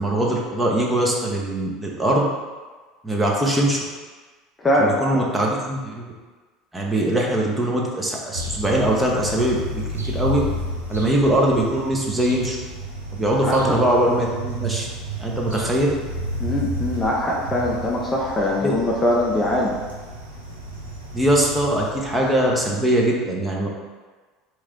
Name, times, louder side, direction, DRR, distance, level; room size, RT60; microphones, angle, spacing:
voice 1, 0.0-2.3 3.0-3.8 4.8-6.1 6.7-10.4 10.9-12.6 13.1-14.9 15.2-16.0 18.6-18.7 21.1-23.7, right 1 dB, 10° right, -3 dB, 0.9 m, -21 dB
voice 2, 4.6-5.3 13.4-13.8 16.4-19.8, left 1 dB, 15° left, -3 dB, 0.7 m, -22 dB
sound 1, 8.3-22.9, right 1 dB, 85° right, 0.7 m, -32 dB
4.3 x 3.2 x 3.7 m, 1.4 s
figure-of-eight pair, 70°, 0 cm